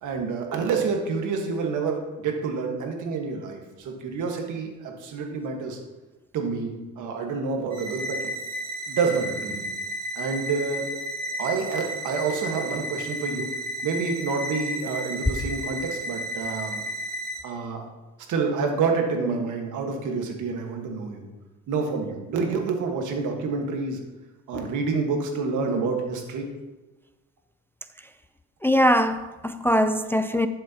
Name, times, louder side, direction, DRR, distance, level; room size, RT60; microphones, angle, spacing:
voice 1, 0.0-5.8 6.3-8.3 8.9-9.7 10.1-10.9 11.4-13.5 13.8-16.8 17.4-17.8 18.3-21.2 21.7-24.0 24.5-26.5, right 4 dB, 80° right, 3 dB, 1.5 m, -28 dB
sound 1, 7.7-17.4, right 1 dB, 30° right, 2.3 m, -33 dB
voice 2, 28.6-30.5, equal, 10° left, 10 dB, 0.3 m, -21 dB
11.5 x 6.6 x 2.8 m, 1.1 s
cardioid pair, 90°, 30 cm